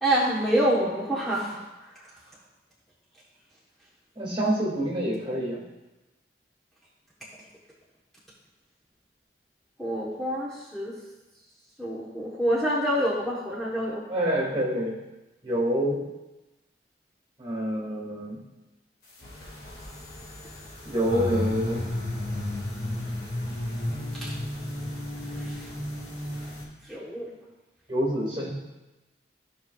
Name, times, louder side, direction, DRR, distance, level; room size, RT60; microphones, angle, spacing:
voice 1, 0.0-1.6 1.9-2.0 9.8-10.9 11.8-14.0 24.2-24.3 25.3-25.7 26.9-27.3, right 1 dB, ahead, -7 dB, 1.0 m, -27 dB
voice 2, 4.2-5.6 14.1-15.0 15.4-16.0 17.4-18.4 20.8-21.8 27.9-28.5, equal, 30° right, -3 dB, 2.1 m, -27 dB
sound 1, 19.2-26.6, left 1 dB, 60° left, 2.0 m, -33 dB
15.0 x 5.3 x 2.3 m, 1.1 s
head